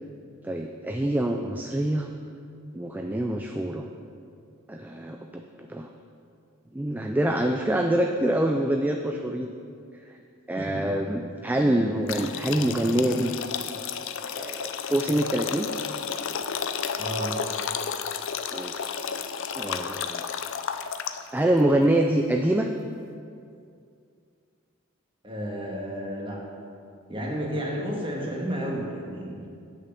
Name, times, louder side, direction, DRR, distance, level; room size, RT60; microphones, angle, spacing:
voice 1, 0.4-2.1 2.7-3.9 4.7-5.9 6.7-9.5 10.1-10.2 10.5-13.3 14.3-15.7 18.5-18.9 19.5-20.3 21.3-22.7, right 1 dB, 10° right, 3 dB, 0.3 m, -25 dB
voice 2, 10.6-10.9 17.0-17.4 25.2-26.4 27.1-29.4, equal, 25° right, -2 dB, 1.6 m, -31 dB
sound 1, 12.1-21.4, left 7 dB, 65° left, 0.5 m, -32 dB
8.2 x 6.5 x 6.7 m, 2.4 s
head